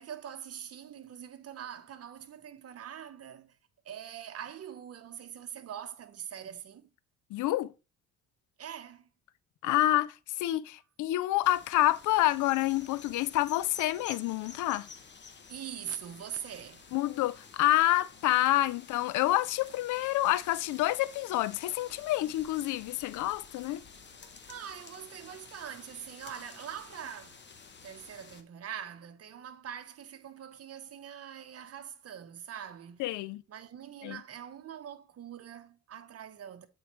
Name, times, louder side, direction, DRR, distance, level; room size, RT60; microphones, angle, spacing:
voice 1, 0.0-3.6 3.8-6.9 8.6-9.1 15.5-16.9 24.5-27.4 27.8-33.1 33.5-36.7, right 9 dB, 50° right, 1.0 m, -43 dB
voice 2, 7.3-7.7 9.6-10.1 10.4-14.9 16.9-23.8 33.0-33.4 34.0-34.2, left 15 dB, 80° left, 0.4 m, -28 dB
sound 1, 11.4-28.4, left 5 dB, 35° left, 1.0 m, -51 dB
8.0 x 4.5 x 3.1 m
cardioid pair, 90°, 30 cm